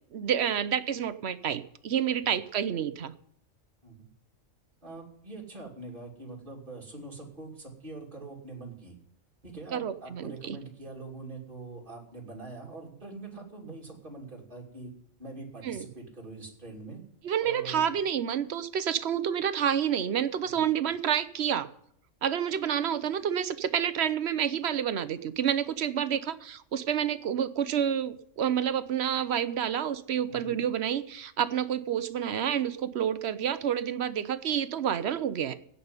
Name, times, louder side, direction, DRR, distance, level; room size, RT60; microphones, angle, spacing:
voice 1, 0.1-3.1 9.7-10.6 15.6-15.8 17.2-21.7 22.2-35.5, right 9 dB, 60° right, 13 dB, 1.0 m, -29 dB
voice 2, 4.8-8.9 9.4-14.9 15.2-17.0 17.4-17.9 20.5-20.6 30.3-30.6, right 3 dB, 40° right, -1 dB, 3.2 m, -43 dB
16.5 x 5.5 x 9.6 m, 0.67 s
omnidirectional pair, 1.4 m